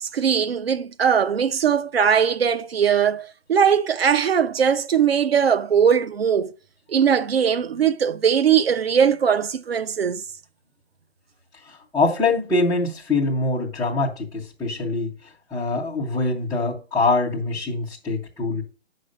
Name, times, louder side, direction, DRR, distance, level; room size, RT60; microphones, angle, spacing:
voice 1, 0.0-6.5 6.9-10.2, right 7 dB, 70° right, 0.9 m, -20 dB
voice 2, 11.7-15.1 15.5-18.6, left 3 dB, ahead, 0.4 m, -24 dB
9.0 x 6.4 x 5.2 m
hypercardioid pair, 145°, 32 cm